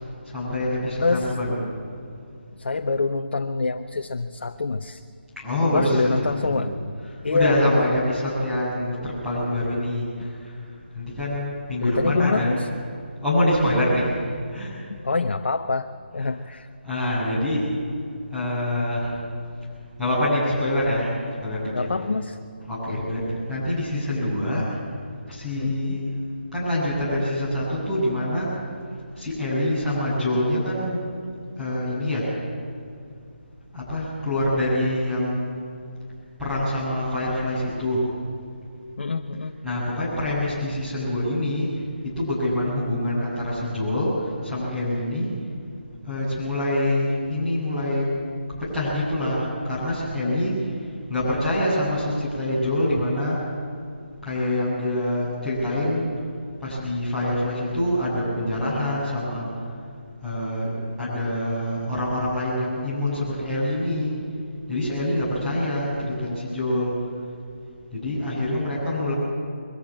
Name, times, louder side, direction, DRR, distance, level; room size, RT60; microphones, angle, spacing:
voice 1, 0.2-1.6 5.4-6.7 7.0-10.6 10.9-12.5 13.2-14.2 14.4-14.7 16.2-16.3 16.8-17.7 18.3-19.2 20.0-21.9 22.6-24.8 25.3-26.1 26.5-28.5 29.1-31.1 31.6-32.3 33.7-35.5 36.4-38.1 39.6-45.3 46.0-48.1 48.6-53.5 54.2-56.3 56.6-59.7 60.2-60.7 61.0-64.2 64.7-66.9 67.9-69.1, left 1 dB, 5° right, -10 dB, 7.3 m, -25 dB
voice 2, 1.0-1.3 2.5-5.0 5.7-6.7 7.2-7.9 11.8-12.7 15.0-16.7 21.7-22.4 22.9-23.1 25.6-26.0 39.0-39.6 66.0-66.1, left 3 dB, 65° left, 6 dB, 0.9 m, -25 dB
22.5 x 14.5 x 8.7 m, 2.3 s
figure-of-eight pair, 155°, 6 cm